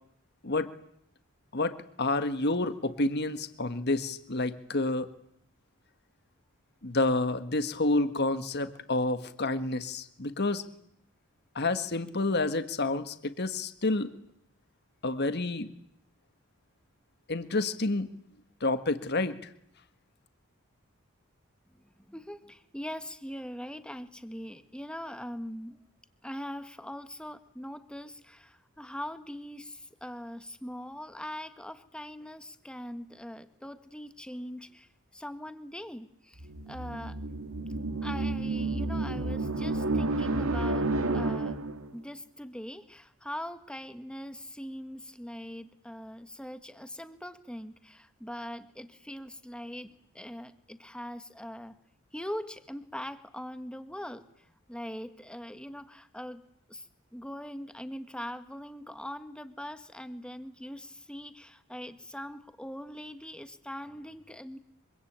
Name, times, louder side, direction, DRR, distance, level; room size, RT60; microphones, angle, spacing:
voice 1, 1.5-5.1 6.8-10.6 11.5-14.1 15.0-15.7 17.3-18.1 18.6-19.3, left 2 dB, 50° left, 10 dB, 1.6 m, -29 dB
voice 2, 21.8-25.8 26.2-37.2 38.0-41.6 41.9-51.8 52.1-54.2 54.7-56.4 56.7-56.9 57.1-64.6, equal, 5° left, 9 dB, 1.7 m, -42 dB
sound 1, 36.4-41.9, right 2 dB, 80° right, 2.0 m, -30 dB
25.0 x 24.5 x 8.9 m, 0.70 s
head